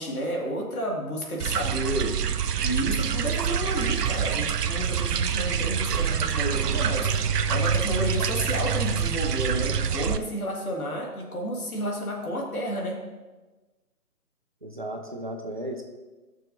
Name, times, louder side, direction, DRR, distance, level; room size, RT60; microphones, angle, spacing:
voice 1, 0.0-2.2 2.6-7.1 7.5-13.0, equal, 65° left, -1 dB, 2.2 m, -31 dB
sound 1, 1.4-10.2, right 7 dB, 80° right, 0.7 m, -26 dB
voice 2, 14.6-15.8, right 1 dB, 30° right, 2 dB, 0.7 m, -35 dB
15.5 x 6.6 x 2.7 m, 1.2 s
hypercardioid pair, 175°, 47 cm